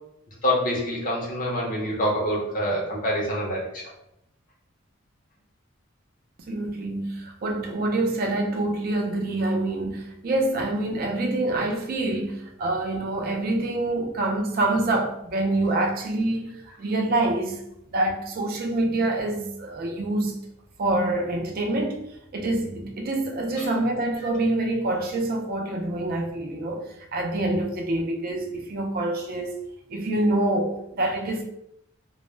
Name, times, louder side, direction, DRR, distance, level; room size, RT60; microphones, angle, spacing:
voice 1, 0.4-3.8 23.6-23.7, equal, 45° left, 0.6 m, -26 dB
voice 2, 6.5-17.6 17.9-20.4 20.8-26.8 27.1-29.5 29.9-31.4, right 2 dB, 50° right, 0.4 m, -26 dB
2.0 x 2.0 x 3.1 m
head